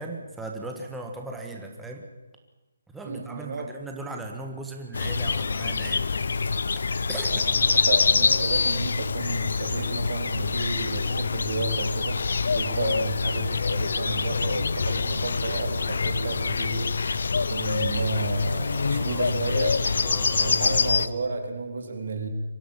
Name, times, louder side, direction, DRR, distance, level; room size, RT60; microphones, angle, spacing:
voice 1, 0.0-2.0 2.9-6.8 7.1-7.4 12.6-12.8 18.9-19.2 20.0-20.8, right 2 dB, 5° right, 2 dB, 1.5 m, -38 dB
voice 2, 3.0-3.7 7.2-12.2 12.5-17.2 17.5-22.3, right 3 dB, 60° right, 6 dB, 3.7 m, -32 dB
sound 1, 4.9-21.1, left 4 dB, 70° left, 0.8 m, -25 dB
sound 2, 13.5-19.4, right 3 dB, 80° right, 6.0 m, -53 dB
24.0 x 15.0 x 7.4 m, 1.1 s
hypercardioid pair, 170°, 0 cm